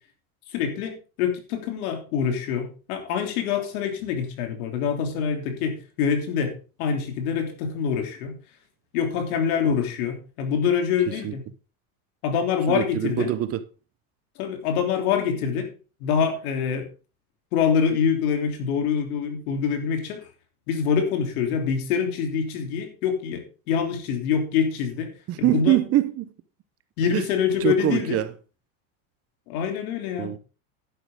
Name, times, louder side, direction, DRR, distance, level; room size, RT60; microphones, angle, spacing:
voice 1, 0.5-8.4 8.9-11.4 12.2-13.3 14.4-15.7 16.0-16.9 17.5-20.2 20.7-25.1 25.4-25.8 27.0-28.2 29.5-30.3, left 7 dB, 80° left, 3.2 m, -25 dB
voice 2, 12.7-13.6 25.3-26.3 27.1-27.3 27.6-28.3 30.2-30.4, right 14 dB, 35° right, 0.8 m, -23 dB
11.0 x 9.7 x 3.7 m
supercardioid pair, 140°, 43 cm